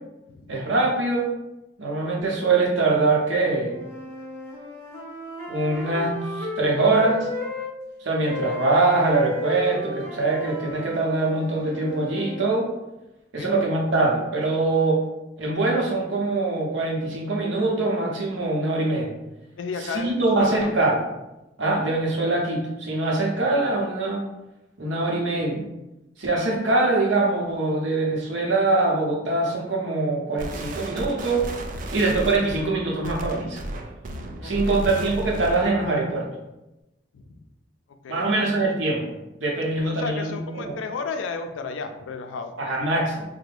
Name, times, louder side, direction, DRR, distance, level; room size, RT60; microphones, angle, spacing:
voice 1, 0.5-1.3 1.8-3.8 5.5-7.3 8.0-12.7 13.3-15.0 15.4-19.1 19.9-21.0 21.6-24.2 24.8-25.6 26.2-31.5 31.9-33.6 34.4-36.3 38.1-40.7 42.6-43.2, right 2 dB, 80° right, -1 dB, 0.8 m, -23 dB
sound 1, 3.6-7.7 8.2-12.5, left 2 dB, 15° left, 1.2 m, -34 dB
voice 2, 19.6-20.7 34.4-34.8 37.1-37.4 38.0-38.5 39.8-42.8, left 4 dB, 90° left, 7 dB, 0.4 m, -34 dB
sound 2, 30.4-35.8, right 1 dB, 45° right, 0.3 m, -33 dB
3.4 x 2.1 x 3.3 m, 0.97 s
head